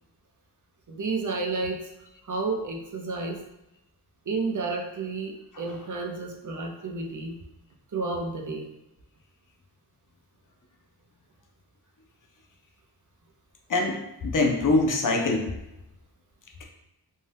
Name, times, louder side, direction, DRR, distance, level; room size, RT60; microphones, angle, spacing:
voice 1, 0.9-1.9 2.2-3.4 4.3-7.4 7.9-8.7, right 3 dB, 45° right, 1 dB, 0.6 m, -31 dB
voice 2, 14.2-15.5, left 2 dB, 50° left, 1 dB, 0.5 m, -23 dB
2.7 x 2.2 x 3.2 m, 0.89 s
wide cardioid pair, 50°, 41 cm